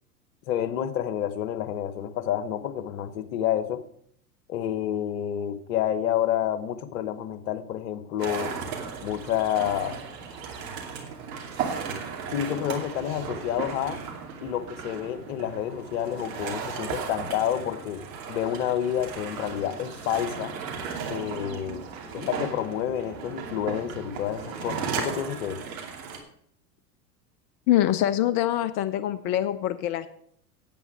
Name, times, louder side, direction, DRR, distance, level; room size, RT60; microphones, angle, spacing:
voice 1, 0.5-3.8 4.5-8.5 9.0-10.0 12.3-14.0 14.4-18.0 18.3-20.5 21.1-21.8 22.1-25.6, left 10 dB, 60° left, 12 dB, 1.2 m, -29 dB
sound 1, 8.2-26.2, right 6 dB, 55° right, 2.6 m, -36 dB
voice 2, 27.7-30.1, left 12 dB, 25° left, 13 dB, 0.4 m, -24 dB
9.2 x 8.8 x 6.1 m, 0.67 s
hypercardioid pair, 95°, 48 cm